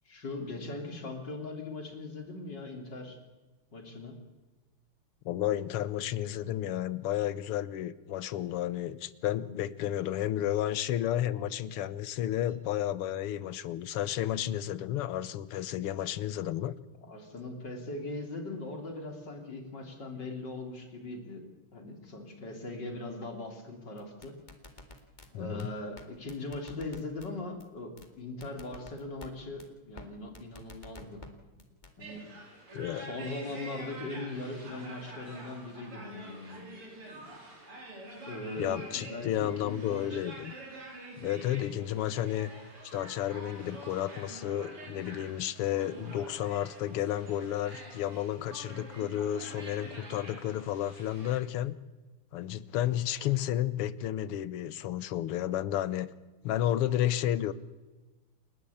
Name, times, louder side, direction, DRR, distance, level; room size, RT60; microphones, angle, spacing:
voice 1, 0.1-3.2 3.7-4.2 17.0-21.4 21.7-24.3 25.3-31.2 32.0-32.2 32.9-36.7 38.3-40.2, left 2 dB, 50° left, 4 dB, 3.8 m, -40 dB
voice 2, 5.3-16.7 25.3-25.7 32.7-33.1 38.6-40.5 41.2-42.5 42.9-51.8 52.3-56.1 56.4-57.5, left 12 dB, 90° left, 17 dB, 1.9 m, -32 dB
sound 1, 24.0-25.3 25.6-25.7 26.0-26.1 26.3-27.3 27.6-27.7 28.0-28.1 28.4-29.3 29.6-29.7 30.0-30.1 30.3-31.3 31.6-31.9, left 2 dB, 20° left, 2.1 m, -48 dB
sound 2, 32.0-51.4, right 2 dB, 85° right, 6.0 m, -47 dB
28.5 x 12.0 x 8.5 m, 1.2 s
omnidirectional pair, 2.4 m